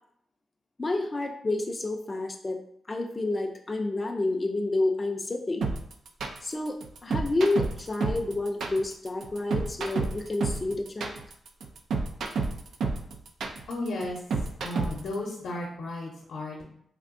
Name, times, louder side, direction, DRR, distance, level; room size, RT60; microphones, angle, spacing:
voice 1, 0.8-2.6 2.9-5.6 6.4-11.1, left 2 dB, 25° left, 2 dB, 0.4 m, -29 dB
sound 1, 5.6-15.1, right 4 dB, 75° right, 0.4 m, -30 dB
voice 2, 13.7-14.2 14.6-16.6, left 2 dB, 85° left, -3 dB, 0.7 m, -34 dB
3.4 x 2.6 x 2.5 m, 0.68 s
cardioid pair, 90°, 0 cm